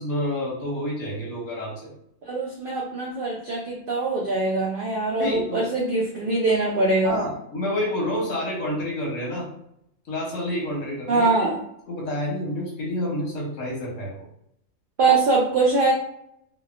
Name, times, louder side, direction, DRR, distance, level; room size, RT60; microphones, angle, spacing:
voice 1, 0.0-1.9 5.2-5.7 7.0-9.5 10.1-11.3 11.9-14.2, left 1 dB, 75° left, -4 dB, 1.2 m, -28 dB
voice 2, 2.3-7.2 11.1-11.6 15.0-15.9, right 3 dB, 90° right, -3 dB, 0.4 m, -22 dB
2.7 x 2.2 x 2.4 m, 0.74 s
omnidirectional pair, 1.5 m